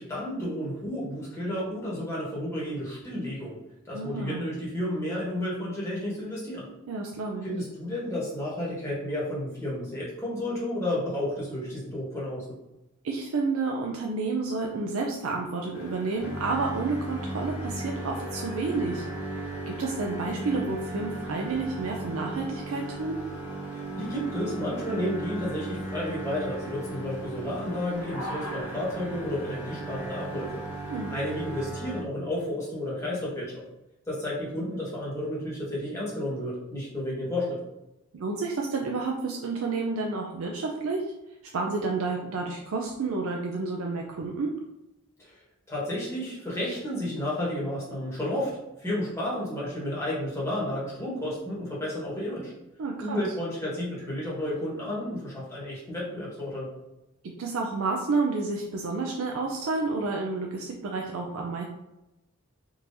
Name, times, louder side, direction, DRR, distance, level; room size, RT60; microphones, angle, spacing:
voice 1, 0.0-3.6 3.8-6.7 7.4-12.6 23.7-30.6 31.1-33.6 34.0-37.6 45.2-45.4 45.7-52.5 53.0-56.7, left 1 dB, 15° left, -7 dB, 1.2 m, -32 dB
voice 2, 3.9-4.5 6.9-7.5 13.0-19.4 19.7-23.2 30.9-31.1 38.1-41.1 41.5-44.5 52.8-53.2 57.4-61.6, right 3 dB, 75° right, 0 dB, 0.4 m, -30 dB
sound 1, 15.7-31.7, left 1 dB, 75° left, 0.7 m, -46 dB
sound 2, 16.2-32.0, right 2 dB, 10° right, 0.5 m, -37 dB
3.7 x 2.9 x 2.6 m, 0.93 s
head